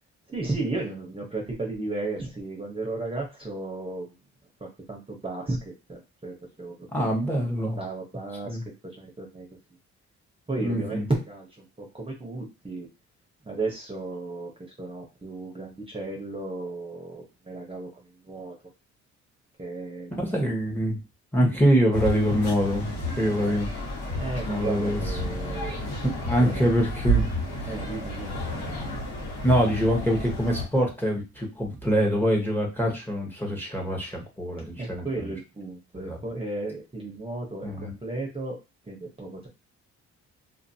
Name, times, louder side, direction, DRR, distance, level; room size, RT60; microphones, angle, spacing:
voice 1, 0.3-4.1 4.9-5.6 5.9-8.6 9.0-9.5 10.5-12.9 13.4-14.5 14.8-18.5 19.6-20.2 23.4-23.6 24.2-25.8 26.4-26.7 27.7-28.4 34.8-38.6 38.9-39.5, right 2 dB, 20° right, -1 dB, 0.8 m, -34 dB
voice 2, 6.9-7.8 8.5-8.6 10.6-11.1 20.1-21.0 21.3-23.7 24.5-25.2 25.5-25.7 26.3-27.3 27.6-27.7 29.4-35.3 35.9-36.2 37.6-38.0, equal, 5° left, 0 dB, 1.0 m, -25 dB
sound 1, 21.9-30.7, right 1 dB, 70° left, 1.4 m, -31 dB
2.5 x 2.5 x 2.7 m, 0.27 s
cardioid pair, 90°, 30 cm